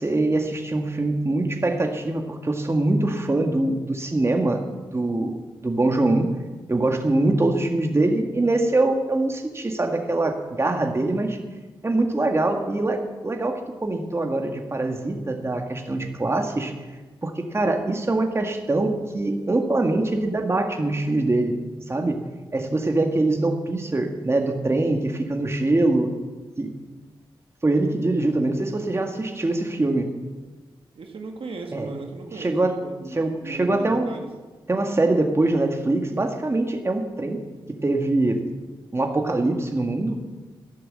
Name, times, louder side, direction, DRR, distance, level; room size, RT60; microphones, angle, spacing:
voice 1, 0.0-4.6 4.9-6.3 6.7-11.4 11.8-16.7 17.2-21.6 21.9-22.2 22.5-26.1 26.6-26.7 27.6-30.1 31.7-31.9 32.4-32.8 33.1-34.1 34.7-37.4 37.7-38.4 38.9-40.2, right 2 dB, 30° right, 3 dB, 1.8 m, -23 dB
voice 2, 31.0-34.3, right 3 dB, 75° right, 3 dB, 1.8 m, -37 dB
13.5 x 11.0 x 7.6 m, 1.3 s
wide cardioid pair, 85°, 9 cm